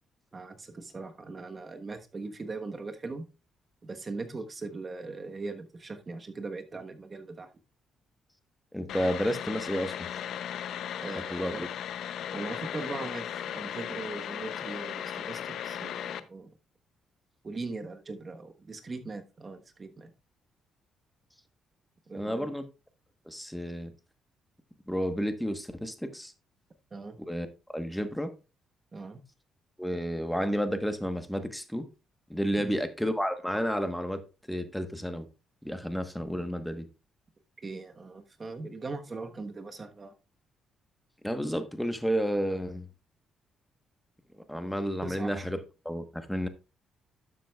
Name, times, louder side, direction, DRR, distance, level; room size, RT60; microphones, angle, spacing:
voice 1, 0.3-3.3 3.8-7.5 11.0-11.7 12.3-16.5 17.4-20.1 22.1-22.5 26.9-27.2 28.9-29.2 32.6-32.8 37.6-40.1 45.0-45.4, right 3 dB, 30° right, 1.3 m, -40 dB
voice 2, 8.7-10.1 11.3-11.7 22.1-22.6 23.3-23.9 24.9-26.3 27.3-27.5 27.7-28.3 29.8-31.9 32.3-34.2 34.5-35.2 35.6-36.9 41.2-42.8 44.5-45.6 45.8-46.5, equal, 5° left, 1.2 m, -31 dB
sound 1, 8.9-16.2, left 9 dB, 75° left, 0.6 m, -36 dB
12.0 x 7.6 x 2.4 m
cardioid pair, 90°, 0 cm